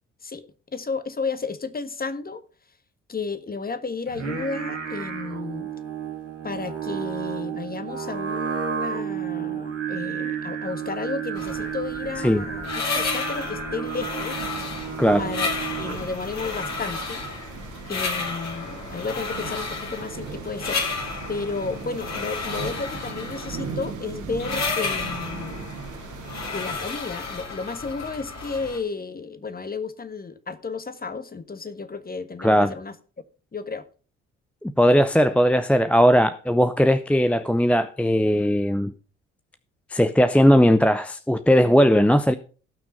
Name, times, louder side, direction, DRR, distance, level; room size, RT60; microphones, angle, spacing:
voice 1, 0.2-2.4 3.1-5.7 6.4-14.5 15.2-15.5 15.8-17.2 17.9-21.0 21.3-25.7 26.5-32.9 33.5-33.9, left 4 dB, 25° left, 1.6 m, -32 dB
Singing, 4.1-16.2, right 7 dB, 85° right, 2.2 m, -32 dB
sound 1, 11.4-28.8, left 4 dB, 45° left, 3.4 m, -32 dB
sound 2, 14.3-26.8, right 5 dB, 55° right, 2.6 m, -38 dB
voice 2, 32.4-32.7 34.6-38.9 39.9-42.3, equal, 5° left, 0.7 m, -18 dB
16.5 x 6.1 x 5.4 m
figure-of-eight pair, 45°, 36 cm